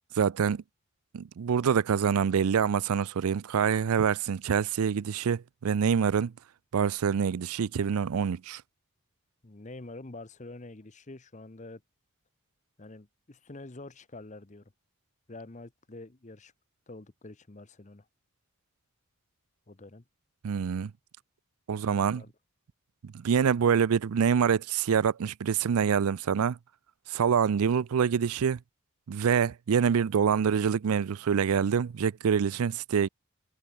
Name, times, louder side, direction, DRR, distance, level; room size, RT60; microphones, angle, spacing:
voice 1, 0.2-0.6 1.1-6.3 6.7-8.6 20.4-20.9 21.7-22.2 23.0-26.6 27.1-28.6 29.1-33.1, right 7 dB, 85° right, 0.4 m, -26 dB
voice 2, 9.4-11.8 12.8-14.7 15.3-16.5 16.9-18.1 19.7-20.0 21.7-22.3, left 2 dB, 35° left, 0.9 m, -46 dB
head